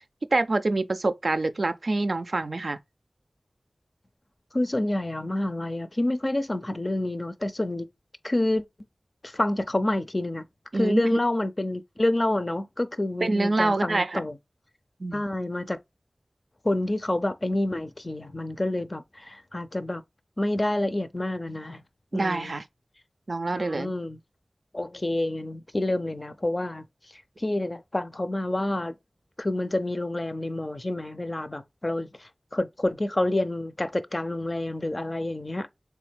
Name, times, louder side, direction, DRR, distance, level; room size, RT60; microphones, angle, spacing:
voice 1, 0.3-2.8 10.7-11.2 13.2-14.2 15.0-15.2 22.1-22.6 23.3-23.9, right 2 dB, 70° right, 0.4 m, -26 dB
voice 2, 4.5-7.9 8.2-8.6 9.2-10.5 10.7-14.4 15.1-15.8 16.6-20.0 20.4-21.8 22.1-22.6 23.5-24.2 24.7-26.8 27.4-29.0 29.4-35.7, left 1 dB, 40° left, 0.5 m, -28 dB
3.4 x 3.2 x 3.3 m
wide cardioid pair, 45°, 0 cm